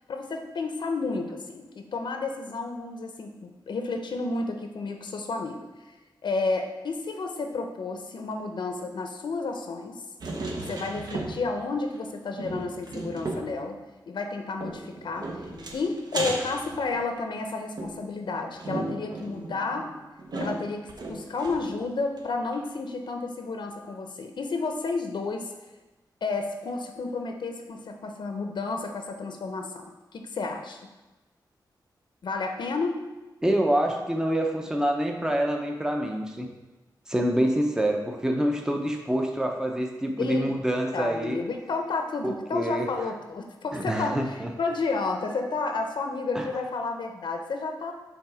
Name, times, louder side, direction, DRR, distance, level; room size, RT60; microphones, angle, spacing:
voice 1, 0.1-5.7 6.2-10.0 10.5-13.8 14.1-15.3 15.7-19.9 20.4-25.5 26.2-30.8 32.2-33.0 40.2-40.5 40.9-47.9, left 3 dB, 75° left, 4 dB, 0.7 m, -31 dB
sound 1, 10.2-11.7 11.9-12.0 12.4-13.6 14.6-17.3 17.8-21.8 22.2-22.3 22.5-22.6, right 2 dB, 60° right, 0.9 m, -35 dB
voice 2, 33.4-36.5 37.1-41.4 42.2-42.9 43.7-44.5 46.3-46.5, right 1 dB, 10° right, 2 dB, 0.6 m, -26 dB
7.3 x 3.5 x 4.9 m, 1.1 s
wide cardioid pair, 150°, 8 cm